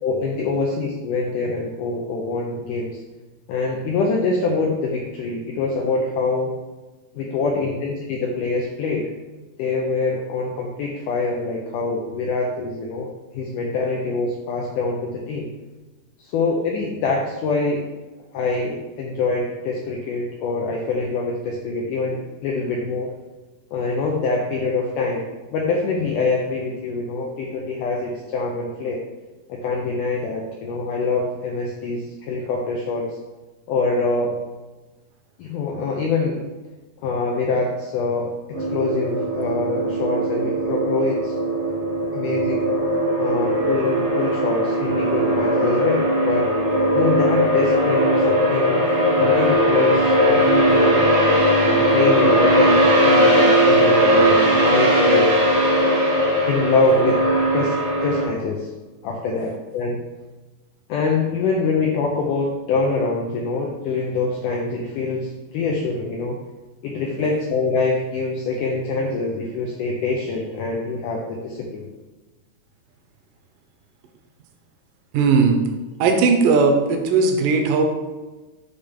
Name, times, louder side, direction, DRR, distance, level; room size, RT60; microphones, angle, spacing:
voice 1, 0.0-3.0 3.5-6.6 7.2-9.1 9.6-15.5 16.2-17.9 18.3-23.1 23.7-25.3 25.5-29.0 29.5-33.2 33.7-34.4 35.4-36.4 37.0-41.3 42.1-42.7 43.2-46.5 46.9-48.8 49.2-51.0 51.6-55.3 56.5-57.2 57.5-58.7 59.0-60.0 60.9-66.4 66.8-71.9, left 3 dB, 90° left, 0 dB, 1.8 m, -24 dB
sound 1, 38.5-58.2, equal, 50° right, 0.7 m, -18 dB
voice 2, 75.1-75.6 76.0-77.8, right 4 dB, 75° right, 4 dB, 2.0 m, -17 dB
6.8 x 3.4 x 5.4 m, 1.2 s
omnidirectional pair, 4.5 m